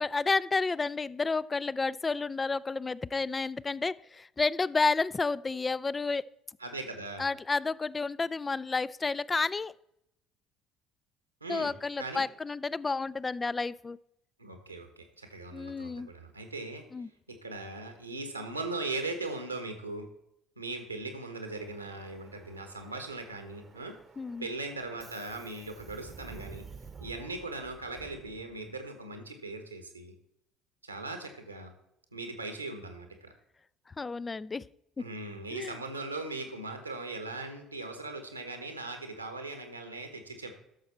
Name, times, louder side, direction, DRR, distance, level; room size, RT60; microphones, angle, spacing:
voice 1, 0.0-6.2 7.2-9.7 11.5-14.0 15.5-16.1 16.9-17.1 24.2-24.5 34.0-34.6 35.5-35.8, left 4 dB, 20° left, 21 dB, 0.3 m, -31 dB
voice 2, 6.6-7.3 11.4-11.7 12.0-12.2 14.4-16.8 17.3-20.1 20.6-23.9 24.4-26.7 27.0-30.1 30.8-31.7 32.1-33.3 35.0-40.5, right 2 dB, 90° right, 6 dB, 1.2 m, -39 dB
Subway metro underground, 21.5-28.9, right 5 dB, 30° right, 0.9 m, -51 dB
13.0 x 6.5 x 4.3 m, 0.80 s
figure-of-eight pair, 60°, 0 cm